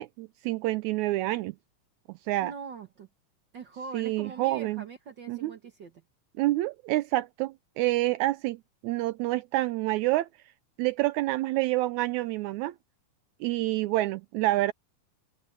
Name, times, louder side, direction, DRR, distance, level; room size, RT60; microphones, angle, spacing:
voice 1, 0.0-1.6 2.3-2.5 3.9-4.9 5.3-5.5 6.4-10.3 10.8-12.7 13.4-14.7, right 17 dB, 80° right, 1.9 m, -28 dB
voice 2, 2.4-3.1 3.5-5.9, right 5 dB, 50° right, 1.4 m, -42 dB
omnidirectional pair, 3.5 m